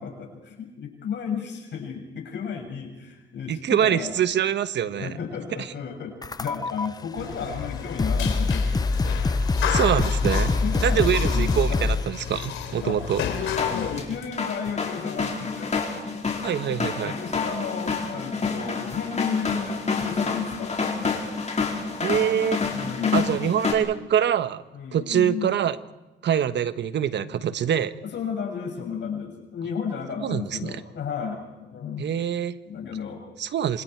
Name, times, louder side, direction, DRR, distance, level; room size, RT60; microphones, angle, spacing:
voice 1, 0.0-4.2 5.0-8.8 10.0-11.9 12.8-13.0 13.5-15.7 16.6-21.2 22.6-23.6 24.7-25.5 28.0-32.1 32.6-33.2, left 7 dB, 65° left, 3 dB, 6.7 m, -33 dB
voice 2, 3.5-5.2 9.7-10.5 10.8-13.2 16.4-17.1 22.0-22.6 23.1-24.6 24.9-25.8 26.2-27.9 30.2-30.8 32.0-32.5 33.4-33.8, right 9 dB, 65° right, 12 dB, 1.3 m, -24 dB
sound 1, 6.2-6.9 7.6-7.7 8.0-12.2, left 3 dB, 20° left, 0.7 m, -24 dB
sound 2, 7.2-14.0, left 8 dB, 85° left, 3.3 m, -32 dB
sound 3, 13.4-23.7, left 4 dB, 35° left, 4.6 m, -28 dB
28.0 x 26.5 x 4.7 m, 1.1 s
cardioid pair, 90°, 20 cm